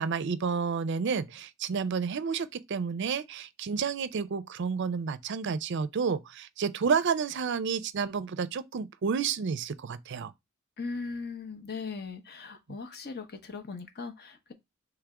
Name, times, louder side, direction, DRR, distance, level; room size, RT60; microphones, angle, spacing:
voice 1, 0.0-10.3, right 6 dB, 55° right, 0.4 m, -30 dB
voice 2, 10.8-14.5, left 4 dB, 50° left, 0.9 m, -39 dB
3.5 x 3.2 x 4.7 m
head